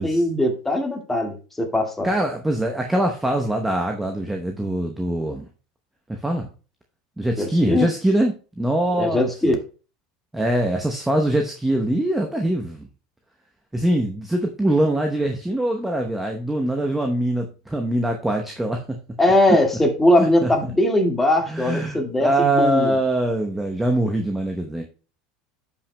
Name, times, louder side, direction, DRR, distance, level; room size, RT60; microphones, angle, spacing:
voice 1, 0.0-2.1 7.4-7.9 9.0-9.5 19.2-23.0, left 1 dB, 10° left, 2 dB, 1.9 m, -20 dB
voice 2, 2.0-5.5 6.1-6.5 7.2-9.6 10.3-12.9 13.7-19.0 19.5-19.6 20.2-20.5 21.5-24.8, right 1 dB, 5° right, 3 dB, 0.9 m, -23 dB
14.0 x 5.8 x 2.2 m, 0.35 s
supercardioid pair, 120°, 2 cm